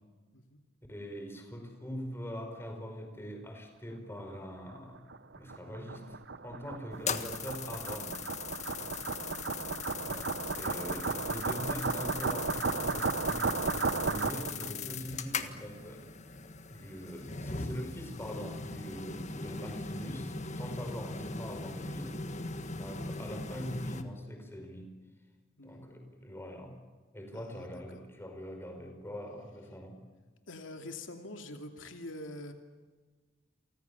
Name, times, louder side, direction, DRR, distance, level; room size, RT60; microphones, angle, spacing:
voice 1, 0.9-5.0 5.4-8.2 10.0-16.1 16.7-22.3 22.7-24.9 25.6-26.8 27.1-30.1, equal, 10° left, 4 dB, 5.2 m, -43 dB
sound 1, 4.7-14.7, right 4 dB, 60° right, 0.9 m, -34 dB
sound 2, 6.9-24.0, left 4 dB, 35° left, 1.7 m, -40 dB
voice 2, 14.5-15.2 25.6-26.0 27.3-27.7 27.9-28.0 30.5-32.5, left 1 dB, 80° left, 5 dB, 2.6 m, -46 dB
30.0 x 24.5 x 7.0 m, 1.3 s
head